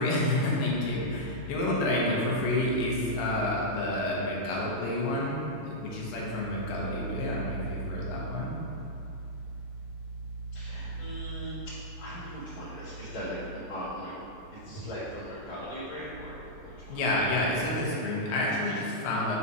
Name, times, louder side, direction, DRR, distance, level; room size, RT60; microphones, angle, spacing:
voice 1, 0.0-8.5 16.9-19.4, left 1 dB, 85° left, -4 dB, 2.7 m, -29 dB
sound 1, 0.7-17.9, right 2 dB, 90° right, 2.4 m, -42 dB
voice 2, 10.5-11.5 12.0-14.1 14.6-17.0, equal, 65° left, -12 dB, 1.9 m, -39 dB
7.1 x 2.7 x 4.8 m, 2.7 s
omnidirectional pair, 4.0 m